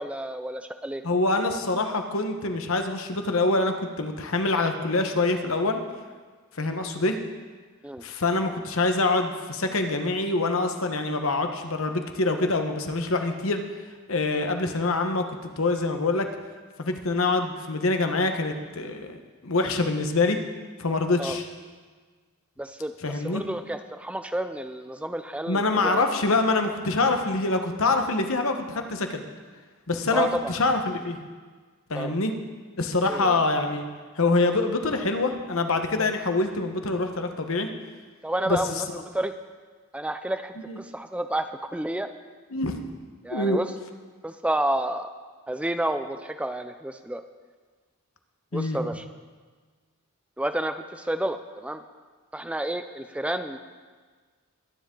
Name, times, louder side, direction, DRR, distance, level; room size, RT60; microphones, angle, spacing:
voice 1, 0.0-1.0 7.8-8.0 21.2-21.4 22.6-26.0 30.1-30.6 31.9-32.1 33.0-33.4 38.2-38.9 39.1-39.3 39.9-41.5 41.7-42.1 43.2-43.7 44.2-45.1 45.5-47.2 48.5-49.0 50.4-51.8 52.3-53.6, right 1 dB, 5° right, 8 dB, 0.4 m, -30 dB
voice 2, 1.0-5.8 6.6-7.2 8.0-13.6 14.1-15.2 15.6-16.3 16.8-20.4 20.8-21.5 23.0-23.4 25.5-29.2 29.9-31.2 31.9-32.3 32.8-33.8 34.2-37.7 38.5-38.6 40.7-40.8 42.5-42.8 43.3-43.6 48.5-48.8, left 3 dB, 65° left, 6 dB, 1.2 m, -25 dB
22.0 x 10.0 x 3.8 m, 1.5 s
head